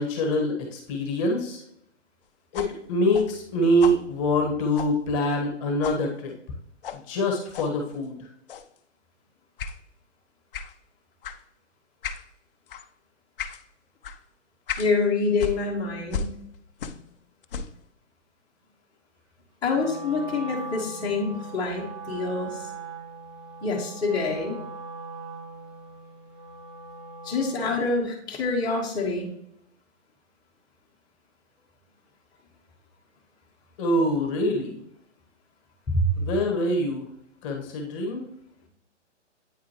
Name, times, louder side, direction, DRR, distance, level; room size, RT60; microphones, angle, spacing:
voice 1, 0.0-1.6 2.5-6.3 6.9-8.3 33.8-34.8 36.2-37.1 37.4-38.2, equal, 25° left, 2 dB, 1.4 m, -25 dB
sound 1, 2.5-5.6 5.8-6.1 6.8-7.0 7.5-7.7 8.5-8.8 9.6-9.8 10.5-10.8 11.2-11.4 12.0-12.3 12.7-12.9 13.4-13.6 14.0-14.2 14.7-14.9 15.4-17.1 17.4-17.8, left 6 dB, 50° left, 0.6 m, -36 dB
voice 2, 14.8-16.3 19.6-22.7 23.6-24.5 27.2-29.3 35.9-36.1, left 3 dB, 10° left, -6 dB, 1.3 m, -26 dB
Wind instrument woodwind instrument, 19.7-27.7, right 3 dB, 15° right, 0.6 m, -40 dB
9.0 x 4.8 x 3.0 m, 0.75 s
hypercardioid pair, 145°, 37 cm